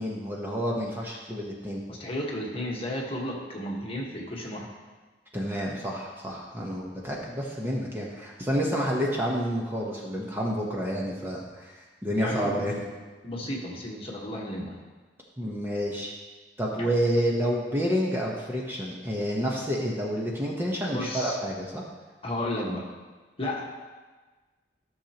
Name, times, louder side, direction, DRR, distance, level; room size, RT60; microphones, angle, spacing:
voice 1, 0.0-1.8 5.3-11.7 12.0-12.8 15.4-16.1 16.6-21.8, equal, 15° right, -3 dB, 1.0 m, -29 dB
voice 2, 1.9-4.7 12.1-12.8 13.2-14.8 16.8-16.9 20.9-21.4 22.2-22.8 23.4-23.6, left 1 dB, 30° left, -2 dB, 1.5 m, -33 dB
13.5 x 6.5 x 3.0 m, 1.3 s
head